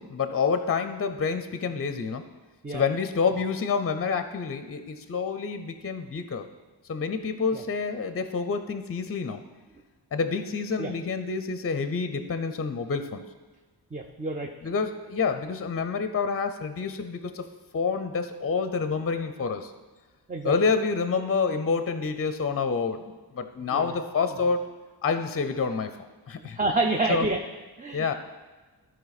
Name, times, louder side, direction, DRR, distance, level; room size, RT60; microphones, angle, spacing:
voice 1, 0.0-2.3 2.7-6.5 6.9-9.4 10.1-13.2 14.6-17.5 17.7-19.7 20.4-24.6 25.0-26.6 27.1-27.3 27.9-28.1, left 5 dB, 35° left, 9 dB, 0.6 m, -28 dB
voice 2, 13.9-14.5 20.3-20.5 23.7-23.9 26.4-27.4 27.8-28.1, right 2 dB, 20° right, 1 dB, 0.6 m, -28 dB
13.0 x 4.6 x 4.1 m, 1.3 s
wide cardioid pair, 95°, 42 cm